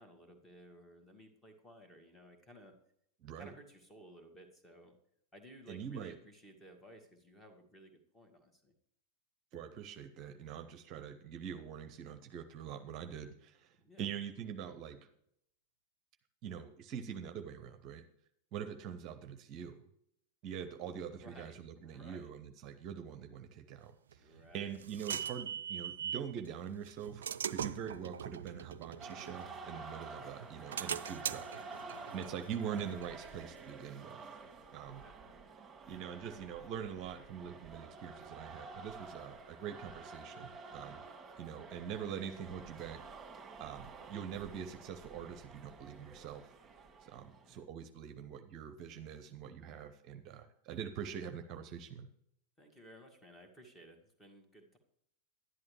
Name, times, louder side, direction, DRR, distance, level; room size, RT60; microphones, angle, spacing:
voice 1, 0.0-2.7 3.4-4.9 5.3-8.7 13.8-14.1 21.1-22.3 24.2-24.8 30.2-30.6 33.2-33.6 35.0-35.4 47.4-47.6 52.6-54.8, equal, 10° left, 5 dB, 1.8 m, -57 dB
voice 2, 3.2-3.5 5.7-6.1 9.5-15.0 16.4-18.0 18.5-19.8 20.4-34.2 34.7-35.0 35.9-41.0 41.4-43.0 43.6-46.5 47.0-52.1, right 8 dB, 40° right, 9 dB, 0.7 m, -44 dB
sound 1, 24.1-26.3 26.9-30.0 30.4-33.8, right 8 dB, 65° right, 0.3 m, -42 dB
sound 2, 29.0-47.5, right 4 dB, 15° right, 1.9 m, -50 dB
11.5 x 10.5 x 3.3 m, 0.75 s
figure-of-eight pair, 90°, 0 cm